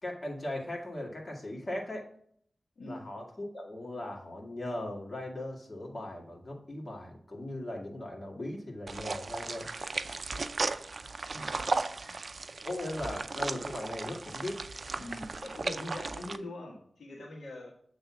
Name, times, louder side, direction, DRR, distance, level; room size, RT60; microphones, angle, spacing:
voice 1, 0.0-2.1 2.9-9.7 12.6-14.6, left 1 dB, 40° left, -1 dB, 2.1 m, -38 dB
sound 1, 8.9-16.4, right 3 dB, 60° right, 0.4 m, -36 dB
voice 2, 11.3-12.2 14.9-17.7, left 1 dB, 85° left, -2 dB, 1.5 m, -43 dB
8.0 x 3.4 x 5.9 m, 0.63 s
cardioid pair, 55°, 0 cm